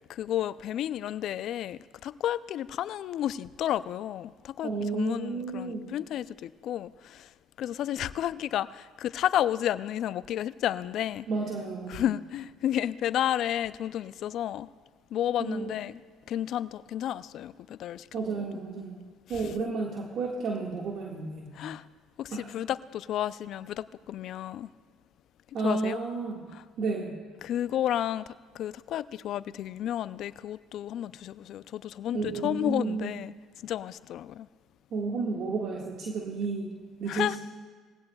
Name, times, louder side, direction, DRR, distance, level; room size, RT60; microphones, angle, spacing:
voice 1, 0.1-7.3 7.6-11.3 11.9-14.7 15.1-16.0 16.3-18.5 18.8-18.9 21.6-21.8 22.2-24.7 25.6-26.0 26.5-26.6 27.4-33.3 33.6-34.5 37.1-37.4, left 11 dB, 65° left, 17 dB, 0.4 m, -32 dB
voice 2, 4.6-5.9 11.3-12.0 15.4-15.7 18.1-21.6 22.3-22.5 25.5-26.5 26.8-27.1 32.1-33.1 34.9-37.4, right 4 dB, 60° right, -1 dB, 1.7 m, -32 dB
21.0 x 16.0 x 2.3 m, 1.5 s
hypercardioid pair, 65°, 0 cm